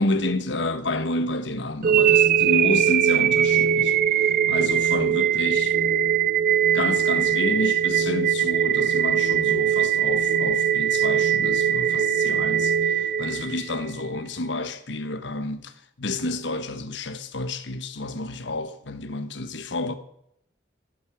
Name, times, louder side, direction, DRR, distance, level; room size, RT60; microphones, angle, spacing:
voice 1, 0.0-5.8 6.7-19.9, left 2 dB, 75° left, 1.1 m, -30 dB
sound 1, 1.8-13.9, right 8 dB, 45° right, 0.4 m, -21 dB
15.0 x 8.0 x 7.1 m
head